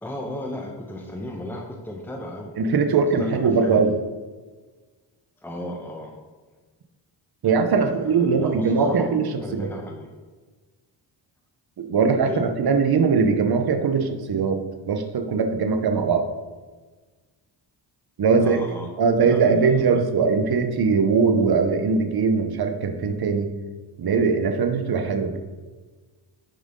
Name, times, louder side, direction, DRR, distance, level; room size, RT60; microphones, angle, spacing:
voice 1, 0.0-2.5 3.0-3.9 5.4-6.1 7.8-9.1 9.4-10.1 12.2-12.4 18.3-18.9 19.2-20.0, left 1 dB, 5° left, 1 dB, 1.1 m, -35 dB
voice 2, 2.6-3.9 7.4-9.2 9.5-9.7 11.8-16.3 18.2-18.6 19.0-23.5 24.0-25.4, right 5 dB, 50° right, 6 dB, 1.0 m, -21 dB
10.5 x 5.0 x 3.8 m, 1.4 s
cardioid pair, 65°, 49 cm